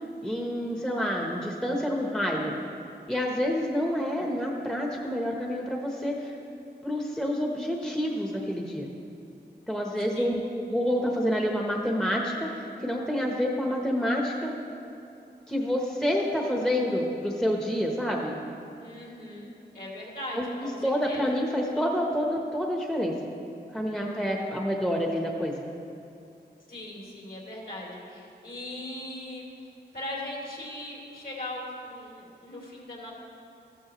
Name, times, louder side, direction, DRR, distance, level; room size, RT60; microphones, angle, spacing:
voice 1, 0.2-2.5 3.1-6.4 6.8-8.9 9.7-14.5 15.5-18.4 20.3-23.1 23.7-25.6, equal, 5° left, 0 dB, 1.0 m, -28 dB
voice 2, 18.8-21.4 23.9-24.4 26.7-29.5 29.9-33.1, left 1 dB, 55° left, -4 dB, 3.2 m, -39 dB
14.0 x 12.5 x 3.1 m, 2.6 s
wide cardioid pair, 65°, 18 cm